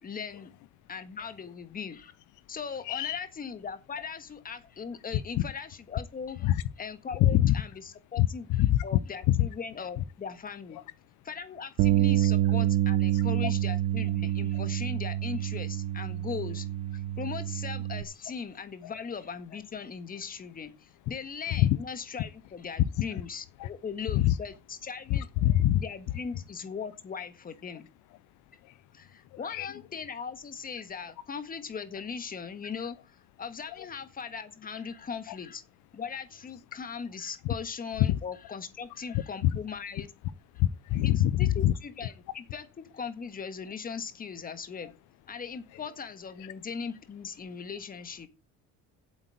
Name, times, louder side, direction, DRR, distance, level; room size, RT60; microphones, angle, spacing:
voice 1, 0.0-0.5 0.9-2.1 2.5-10.8 11.2-16.7 16.9-25.3 25.7-27.9 28.9-35.6 35.9-40.1 41.0-44.9 45.3-48.3, left 6 dB, 25° left, 1.6 m, -39 dB
voice 2, 2.9-3.2 6.4-6.5 7.4-7.5 8.2-8.3 8.6-8.7 13.4-13.5 24.2-24.3 25.4-25.8 29.5-29.7 40.6-41.3 41.6-41.7, left 13 dB, 70° left, 0.6 m, -24 dB
Bass guitar, 11.8-18.0, right 12 dB, 70° right, 1.0 m, -27 dB
8.2 x 8.2 x 8.3 m
cardioid pair, 140°, 31 cm